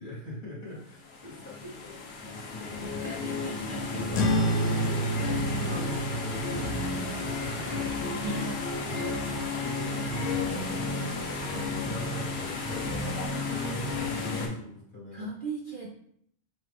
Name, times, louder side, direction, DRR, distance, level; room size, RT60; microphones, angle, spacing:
voice 1, 0.0-8.5 8.8-9.2 9.6-15.3, left 1 dB, 40° left, -6 dB, 1.5 m, -40 dB
sound 1, 1.0-14.5, left 3 dB, 60° left, 1.0 m, -33 dB
voice 2, 3.0-4.0 5.1-5.4 8.2-8.6 15.1-16.0, right 3 dB, 55° right, -1 dB, 0.6 m, -37 dB
sound 2, 4.1-9.0, right 1 dB, 80° left, 1.0 m, -31 dB
Singing, 4.7-13.3, right 4 dB, 90° right, 1.0 m, -49 dB
5.2 x 2.3 x 3.4 m, 0.65 s
omnidirectional pair, 1.3 m